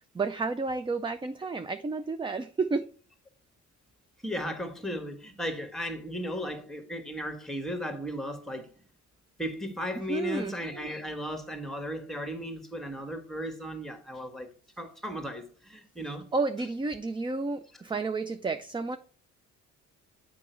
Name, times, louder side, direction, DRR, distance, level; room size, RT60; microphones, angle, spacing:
voice 1, 0.1-2.9 10.1-10.6 16.3-19.0, right 3 dB, 15° right, 0.4 m, -31 dB
voice 2, 4.2-8.7 9.4-14.5 14.8-16.3, equal, ahead, 1.5 m, -35 dB
7.3 x 5.2 x 4.4 m
cardioid pair, 90°, 30 cm